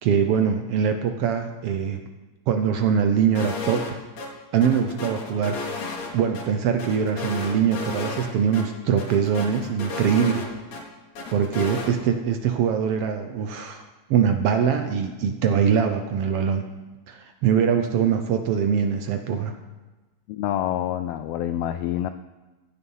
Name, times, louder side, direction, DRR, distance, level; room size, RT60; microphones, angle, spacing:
voice 1, 0.0-2.0 2.5-4.0 4.5-5.8 6.1-10.5 11.3-13.8 14.1-16.7 17.1-19.5, right 7 dB, 70° right, 6 dB, 1.5 m, -23 dB
sound 1, 3.4-3.9 4.2-4.3 4.6-6.4 6.8-8.3 8.5-8.6 9.0-10.8 11.2-11.9, left 3 dB, 65° left, 3.1 m, -33 dB
voice 2, 20.3-22.1, left 11 dB, 85° left, 10 dB, 1.4 m, -27 dB
15.0 x 9.3 x 5.6 m, 1.2 s
omnidirectional pair, 3.3 m